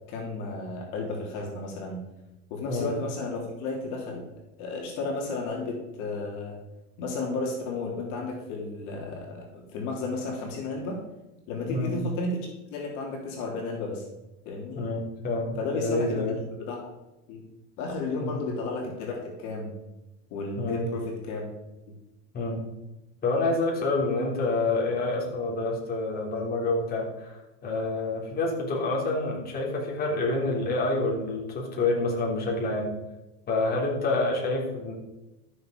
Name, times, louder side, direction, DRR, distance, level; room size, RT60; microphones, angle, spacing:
voice 1, 0.1-2.0 2.5-4.2 4.6-6.6 7.0-11.0 11.5-14.0 14.4-14.9 15.6-16.2 16.6-16.9 17.3-17.4 17.8-19.7 20.3-21.5 21.9-22.0, left 3 dB, 50° left, -1 dB, 2.9 m, -33 dB
voice 2, 14.8-16.4 18.2-18.4 20.6-20.8 22.3-22.6 23.2-32.9 33.5-34.9, left 2 dB, 25° left, -2 dB, 3.4 m, -28 dB
13.0 x 6.9 x 5.1 m, 1.0 s
supercardioid pair, 130°, 37 cm